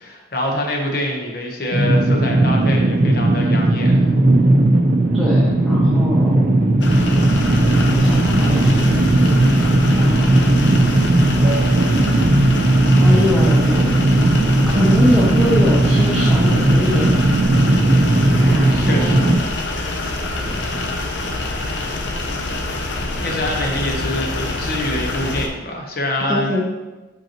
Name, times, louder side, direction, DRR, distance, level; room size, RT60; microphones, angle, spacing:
voice 1, 0.0-4.1 18.4-19.4 23.2-26.6, left 1 dB, 50° left, 0 dB, 1.0 m, -25 dB
sound 1, 1.7-19.4, right 1 dB, 45° right, 0.5 m, -16 dB
voice 2, 5.1-6.4 7.9-8.8 9.9-10.6 12.9-14.0 14.7-17.2 18.4-19.5 20.3-21.0 26.3-26.6, left 1 dB, ahead, -6 dB, 0.7 m, -23 dB
sound 2, 6.8-25.5, left 2 dB, 70° left, 0.7 m, -25 dB
5.8 x 5.4 x 3.0 m, 1.1 s
head